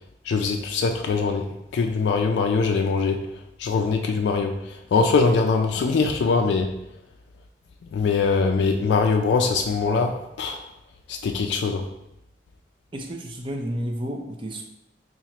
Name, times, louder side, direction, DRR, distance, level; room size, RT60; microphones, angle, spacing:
voice 1, 0.3-1.5 1.7-3.3 3.6-6.7 7.9-10.6 11.1-11.9, left 4 dB, 80° left, 4 dB, 0.3 m, -22 dB
voice 2, 12.9-14.6, equal, 30° right, 2 dB, 0.4 m, -31 dB
2.9 x 2.4 x 4.3 m, 0.85 s
head